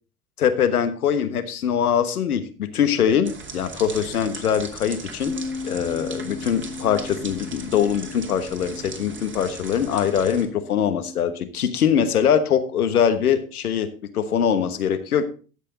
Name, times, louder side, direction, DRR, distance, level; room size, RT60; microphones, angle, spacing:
voice 1, 0.4-5.3 5.6-13.9 14.1-15.3, left 8 dB, 85° left, 10 dB, 1.3 m, -22 dB
sound 1, 3.2-10.5, right 4 dB, 25° right, 2.5 m, -39 dB
Bass guitar, 5.3-11.5, left 4 dB, 10° left, 1.2 m, -37 dB
12.5 x 7.9 x 3.9 m, 0.37 s
hypercardioid pair, 80°, 44 cm